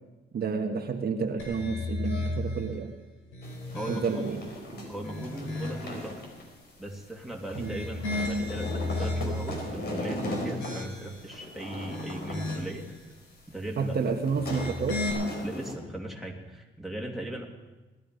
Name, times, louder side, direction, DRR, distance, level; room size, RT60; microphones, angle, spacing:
voice 1, 0.3-2.9 3.9-4.4 4.7-4.9 7.6-7.8 13.8-15.0, right 5 dB, 50° right, 3 dB, 1.4 m, -30 dB
sound 1, 1.4-2.7 3.2-4.4 4.9-6.0 7.5-9.6 10.1-11.2 11.7-12.8 14.3-15.1, left 2 dB, 85° left, 4.8 m, -34 dB
sound 2, 3.4-15.7, left 1 dB, 55° left, 4.8 m, -38 dB
voice 2, 3.7-4.3 4.9-6.2 6.8-13.0 13.5-14.1 15.4-17.4, right 1 dB, ahead, -1 dB, 2.6 m, -38 dB
19.0 x 12.5 x 5.2 m, 1.2 s
cardioid pair, 90°, 20 cm